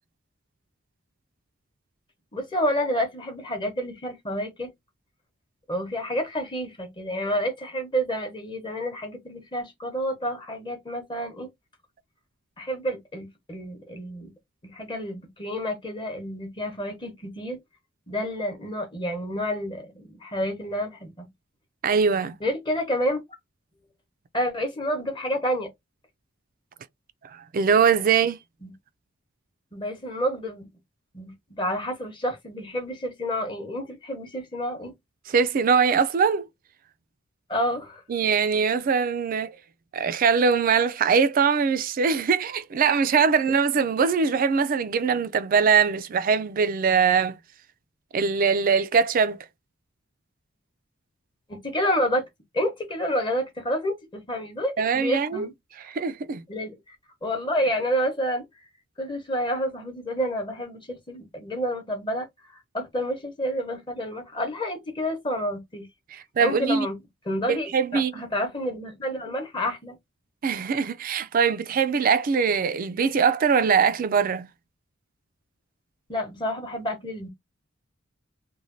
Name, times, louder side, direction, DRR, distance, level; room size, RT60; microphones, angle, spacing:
voice 1, 2.3-4.7 5.7-11.5 12.6-14.3 14.6-17.6 18.1-21.3 22.4-23.2 24.3-25.7 28.6-28.7 29.7-30.7 31.1-34.9 37.5-38.0 51.5-52.2 52.5-55.5 56.5-57.0 57.2-58.5 59.0-62.3 62.7-65.9 66.4-67.0 67.3-70.0 76.1-77.3, equal, 25° left, 0.8 m, -29 dB
voice 2, 21.8-22.3 27.5-28.4 35.3-36.5 38.1-39.6 39.9-47.4 48.1-49.4 54.8-55.5 55.9-56.4 66.1-66.9 67.5-68.1 70.4-74.5, right 6 dB, 45° right, 0.3 m, -22 dB
3.1 x 2.2 x 2.5 m
head